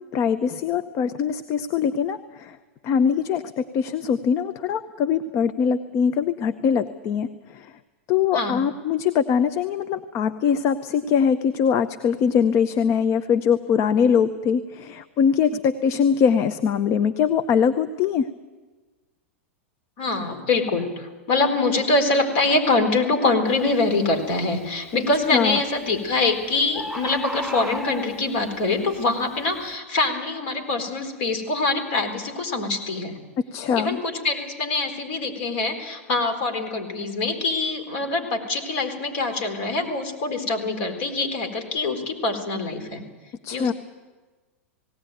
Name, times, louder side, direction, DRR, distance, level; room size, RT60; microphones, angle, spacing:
voice 1, 0.1-2.6 2.8-7.3 7.5-7.7 8.1-18.3 25.3-25.6 33.5-34.0 43.4-43.7, left 7 dB, 40° left, 12 dB, 0.8 m, -22 dB
voice 2, 8.3-8.7 20.0-33.2 33.7-43.0 43.5-43.7, left 3 dB, 55° left, 6 dB, 4.2 m, -24 dB
Bird, 23.5-23.7 24.3-24.7 25.7-25.8 26.1-26.2 26.4-26.5 26.7-28.5 29.0-29.1, equal, ahead, 2.3 m, -33 dB
18.5 x 18.0 x 9.2 m, 1.3 s
hypercardioid pair, 100°, 7 cm